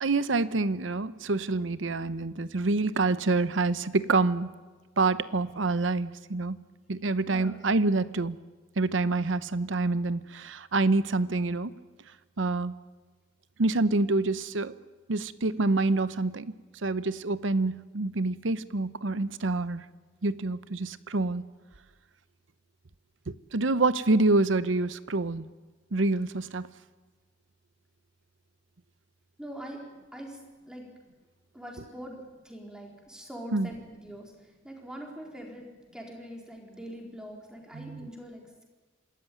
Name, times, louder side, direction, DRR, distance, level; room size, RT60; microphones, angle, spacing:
voice 1, 0.0-4.5 5.0-6.6 6.9-8.4 8.8-11.7 12.4-12.7 13.6-14.7 15.1-16.6 16.8-19.8 20.2-21.4 23.3-25.5 25.9-26.7 33.5-33.7 37.7-38.1, right 3 dB, 80° right, 15 dB, 0.9 m, -27 dB
voice 2, 7.3-7.7 29.4-30.4 30.7-30.9 31.5-32.2 32.4-35.6 35.9-38.6, equal, 5° right, 0 dB, 4.2 m, -43 dB
26.0 x 13.5 x 9.3 m, 1.3 s
head